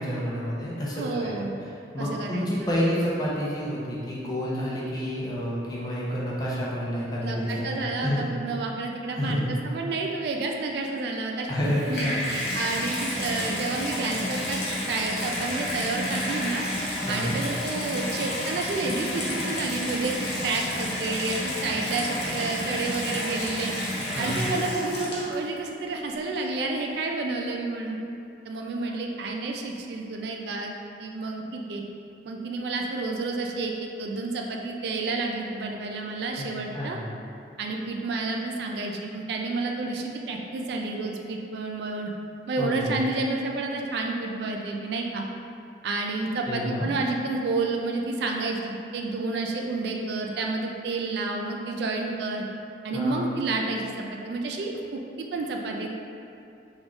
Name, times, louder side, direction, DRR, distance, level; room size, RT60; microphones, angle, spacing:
voice 1, 0.0-1.3 1.6-1.7 1.9-8.2 9.2-9.6 11.5-12.3 17.1-17.4 24.1-24.5 28.8-28.9 36.4-37.0 42.6-43.0 46.5-46.9 52.9-53.2, equal, 20° left, -6 dB, 0.6 m, -29 dB
voice 2, 1.0-1.5 2.0-2.5 7.2-16.6 17.1-23.7 24.2-28.0 28.5-30.7 31.0-31.8 32.2-37.0 37.6-42.1 42.5-45.2 45.8-52.4 52.8-55.9, right 3 dB, 70° right, 1 dB, 0.3 m, -30 dB
Water tap faucet / Bathtub (filling or washing), 11.5-25.6 26.3-26.4, left 1 dB, 65° left, 0.8 m, -30 dB
3.8 x 3.6 x 2.3 m, 2.6 s
head